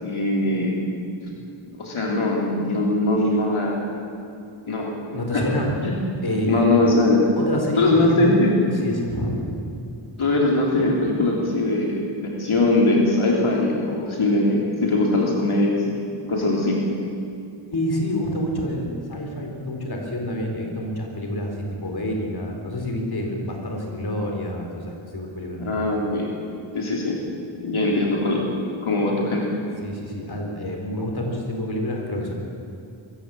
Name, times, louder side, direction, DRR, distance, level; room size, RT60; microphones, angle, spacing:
voice 1, 0.0-0.7 1.8-3.8 4.7-4.9 5.3-5.4 5.8-5.9 6.5-7.2 7.8-8.6 10.2-16.0 16.3-16.8 25.6-26.3 26.7-27.2 27.6-28.5 28.8-29.5, left 2 dB, 85° left, -2 dB, 3.5 m, -21 dB
voice 2, 5.1-5.8 6.2-6.6 7.4-8.3 8.7-9.7 17.7-25.6 28.0-28.1 29.8-32.3, equal, 50° left, 1 dB, 4.2 m, -28 dB
23.0 x 16.0 x 7.8 m, 2.5 s
wide cardioid pair, 85°, 48 cm